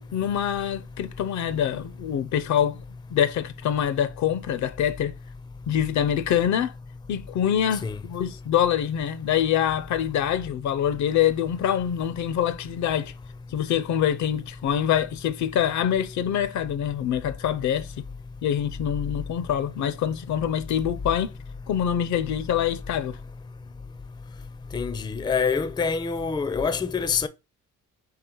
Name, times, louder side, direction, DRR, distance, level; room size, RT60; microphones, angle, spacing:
voice 1, 0.0-2.8 3.1-5.1 5.7-6.7 7.1-13.1 13.5-17.9 18.4-21.3 21.7-23.2, left 9 dB, 70° left, 0.5 m, -25 dB
voice 2, 24.7-27.3, left 5 dB, 15° left, 0.4 m, -26 dB
3.8 x 2.9 x 4.4 m
cardioid pair, 90°, 30 cm